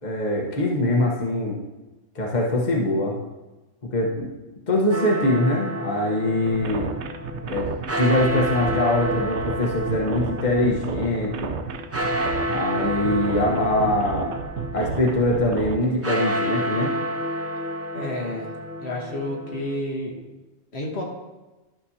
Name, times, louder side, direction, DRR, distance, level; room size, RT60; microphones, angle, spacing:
voice 1, 0.0-1.6 2.1-3.1 3.9-4.3 4.7-6.9 7.4-7.7 8.0-11.5 12.5-14.3 14.7-16.9, left 1 dB, 40° left, -2 dB, 1.3 m, -23 dB
sound 1, 4.9-19.8, equal, 25° right, 0.3 m, -30 dB
sound 2, 6.5-15.8, right 7 dB, 80° right, 0.9 m, -32 dB
voice 2, 17.9-18.5 18.8-20.2 20.7-21.0, left 1 dB, 70° left, -2 dB, 1.6 m, -30 dB
12.0 x 6.2 x 2.8 m, 1.1 s
omnidirectional pair, 1.2 m